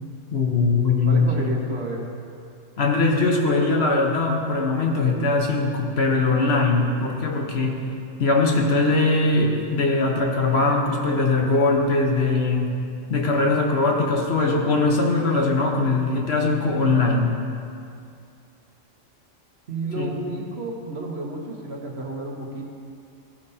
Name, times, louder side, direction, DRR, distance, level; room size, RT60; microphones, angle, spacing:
voice 1, 0.3-1.5 2.8-7.7 8.2-12.7 13.1-17.3 20.0-20.1, left 3 dB, 55° left, 0 dB, 1.2 m, -21 dB
voice 2, 1.1-2.1 19.7-22.7, right 2 dB, 55° right, 0 dB, 1.2 m, -31 dB
14.5 x 5.1 x 4.1 m, 2.4 s
omnidirectional pair, 1.3 m